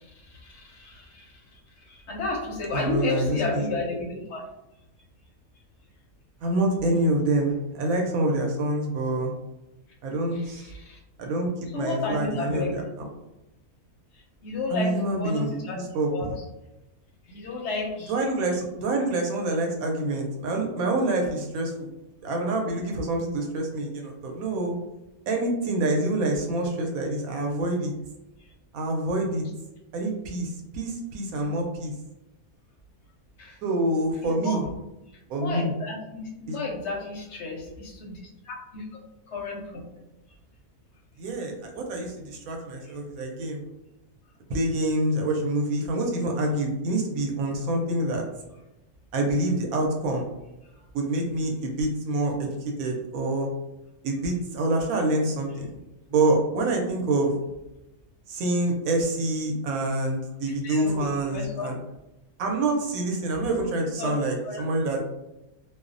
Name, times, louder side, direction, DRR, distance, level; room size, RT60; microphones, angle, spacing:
voice 1, 0.3-1.2 1.8-4.5 10.3-11.0 11.7-12.8 14.4-15.8 16.1-16.3 17.3-18.1 33.4-33.6 34.2-34.6 35.4-38.2 38.4-38.8 39.3-39.8 42.8-42.9 60.6-61.7 63.6-63.7 64.0-64.1 64.4-64.7, left 3 dB, 65° left, -1 dB, 0.7 m, -32 dB
voice 2, 2.7-3.6 6.4-9.3 10.0-10.7 11.2-11.5 11.7-13.1 14.7-16.4 18.1-21.9 22.2-24.7 25.3-27.9 28.7-29.5 29.9-31.9 33.6-34.6 35.3-35.7 36.5-36.6 41.2-43.6 44.5-48.2 49.1-50.3 50.9-53.5 54.0-55.7 56.1-57.3 58.3-61.8 62.4-65.0, right 2 dB, 75° right, 1 dB, 1.0 m, -26 dB
2.5 x 2.0 x 2.5 m, 0.95 s
omnidirectional pair, 1.6 m